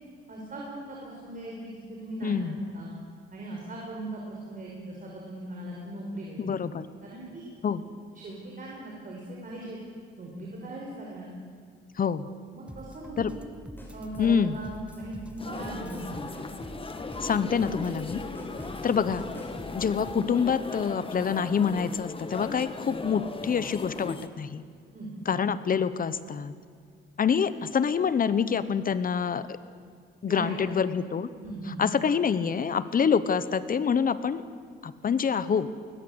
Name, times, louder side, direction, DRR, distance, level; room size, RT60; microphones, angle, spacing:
voice 1, 0.3-3.0 3.3-6.5 7.0-7.5 8.1-9.8 10.2-11.3 12.5-13.4 13.9-16.3 24.9-25.4 30.2-30.6 31.4-31.8, right 1 dB, 40° right, -2 dB, 5.4 m, -39 dB
voice 2, 2.2-2.6 6.4-6.8 7.6-7.8 12.0-12.3 13.2-13.3 14.2-14.6 17.2-18.2 18.8-19.2 19.7-24.6 25.3-26.5 27.2-29.6 30.2-31.3 31.8-34.4 34.8-35.7, left 6 dB, 45° left, 14 dB, 1.1 m, -26 dB
sound 1, 12.7-20.4, equal, 5° right, 1.5 m, -45 dB
sound 2, 13.8-20.0, equal, 10° left, 6.4 m, -51 dB
sound 3, 15.4-24.3, left 3 dB, 25° left, 1.6 m, -38 dB
21.0 x 20.5 x 8.1 m, 2.1 s
cardioid pair, 95°, 20 cm